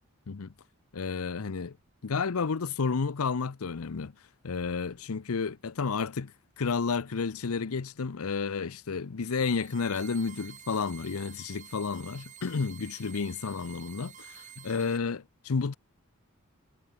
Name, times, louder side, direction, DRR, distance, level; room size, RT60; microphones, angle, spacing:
voice 1, 0.9-1.8 2.0-4.1 4.4-15.8, left 5 dB, 80° left, 0.7 m, -31 dB
sound 1, 9.2-15.0, right 9 dB, 35° right, 1.1 m, -50 dB
head